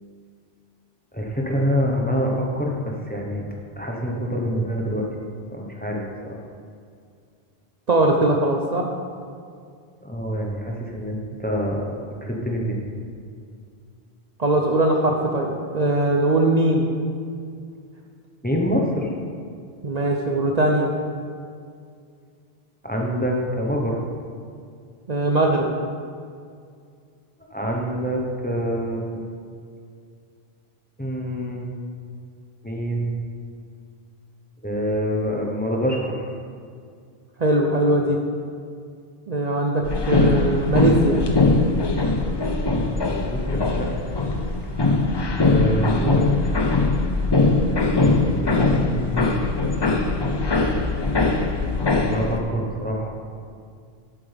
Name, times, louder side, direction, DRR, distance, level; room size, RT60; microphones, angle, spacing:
voice 1, 1.1-3.5 3.8-5.0 5.5-6.4 10.0-11.9 12.2-12.8 18.4-19.1 22.8-24.0 27.5-29.2 31.0-31.7 32.6-33.2 34.6-36.2 42.8-44.3 45.5-46.4 48.4-49.3 52.1-53.1, equal, 10° left, -1 dB, 1.1 m, -26 dB
voice 2, 7.9-8.9 14.4-16.9 19.8-20.9 25.1-25.7 37.4-38.2 39.3-41.2, right 2 dB, 45° right, 0 dB, 0.8 m, -20 dB
sound 1, 39.9-52.4, left 3 dB, 30° left, 0.6 m, -21 dB
11.5 x 8.5 x 3.5 m, 2.3 s
omnidirectional pair, 1.1 m